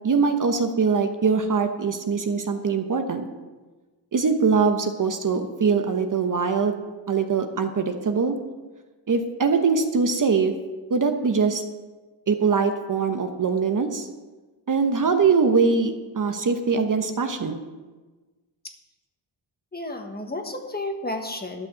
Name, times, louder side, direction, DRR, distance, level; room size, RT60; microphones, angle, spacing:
voice 1, 0.0-3.3 4.1-6.8 7.1-8.4 9.1-10.5 10.9-11.6 12.3-14.1 14.7-17.6, right 5 dB, 45° right, 6 dB, 1.0 m, -22 dB
voice 2, 19.7-21.7, left 2 dB, 20° left, 4 dB, 1.4 m, -32 dB
11.5 x 6.2 x 7.3 m, 1.3 s
cardioid pair, 105°, 46 cm